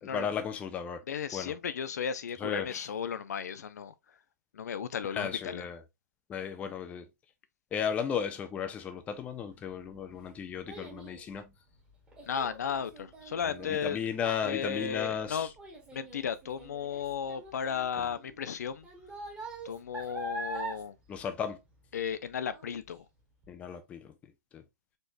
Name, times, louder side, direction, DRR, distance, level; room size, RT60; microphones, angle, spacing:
voice 1, 0.0-1.0 1.3-1.5 2.4-2.9 5.1-5.8 6.3-7.1 7.7-11.5 13.4-15.5 18.0-18.1 21.1-21.6 23.5-24.1 24.5-24.6, left 7 dB, 15° left, 0.4 m, -35 dB
voice 2, 1.1-3.9 4.5-5.6 12.3-14.0 14.4-15.5 15.9-18.9 19.6-20.9 21.9-23.0, left 7 dB, 65° left, 0.6 m, -35 dB
Child speech kid speaking, 9.5-22.2 22.5-22.9 23.4-23.5, right 2 dB, 10° right, 1.3 m, -44 dB
4.3 x 3.2 x 2.6 m
hypercardioid pair, 135°, 9 cm